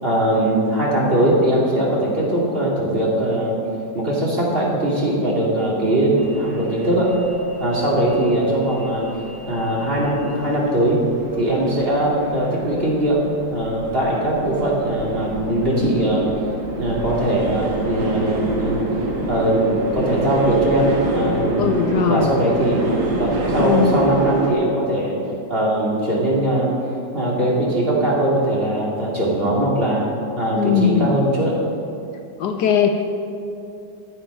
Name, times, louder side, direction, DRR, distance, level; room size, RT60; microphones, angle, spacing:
voice 1, 0.0-3.6 3.9-7.1 7.6-9.1 9.5-11.0 11.3-16.3 16.8-18.8 19.3-21.7 22.1-22.9 23.2-25.2 25.5-26.7 27.1-30.1 30.4-31.6, right 1 dB, 30° right, -4 dB, 2.5 m, -20 dB
sound 1, 6.2-24.5, right 2 dB, 80° right, 2.3 m, -28 dB
voice 2, 21.6-22.3 23.6-24.0 30.6-31.1 32.4-33.0, left 8 dB, 70° left, 5 dB, 1.3 m, -19 dB
14.0 x 8.5 x 5.4 m, 2.7 s
omnidirectional pair, 2.0 m